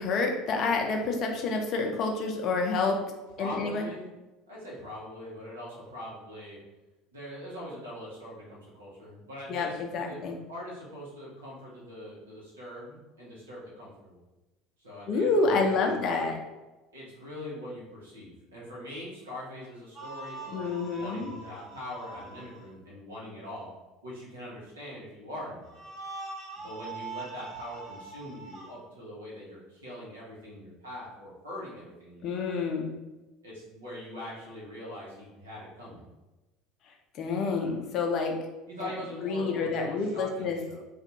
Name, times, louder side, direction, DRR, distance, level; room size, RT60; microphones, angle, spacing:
voice 1, 0.0-3.0 3.4-3.9 9.5-10.4 15.1-16.4 20.5-21.3 32.2-32.9 37.1-38.3 38.8-38.9 39.2-40.6, left 4 dB, 45° left, 3 dB, 0.5 m, -28 dB
voice 2, 3.4-4.1 4.5-6.6 7.1-9.8 10.0-10.2 10.5-14.2 14.8-16.0 16.9-23.7 24.0-25.9 26.6-32.6 33.4-36.0 38.7-40.8, left 1 dB, 75° right, -6 dB, 1.1 m, -42 dB
sound 1, 19.9-22.7 25.6-28.7, right 3 dB, 45° right, 1.4 m, -42 dB
2.7 x 2.4 x 3.9 m, 1.1 s
figure-of-eight pair, 65°, 0 cm